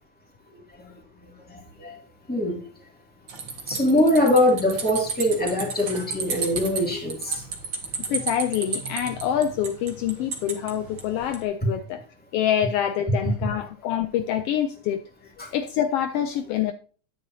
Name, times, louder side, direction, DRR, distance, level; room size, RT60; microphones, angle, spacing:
voice 1, 1.5-2.0 2.3-2.6 3.7-7.4 15.4-15.5, left 1 dB, 5° left, 2.0 m, -22 dB
sound 1, 3.3-11.4, right 5 dB, 45° right, 1.8 m, -33 dB
voice 2, 8.1-12.0 12.3-15.0 15.5-16.7, left 10 dB, 85° left, 1.3 m, -26 dB
9.5 x 9.5 x 2.7 m
omnidirectional pair, 3.3 m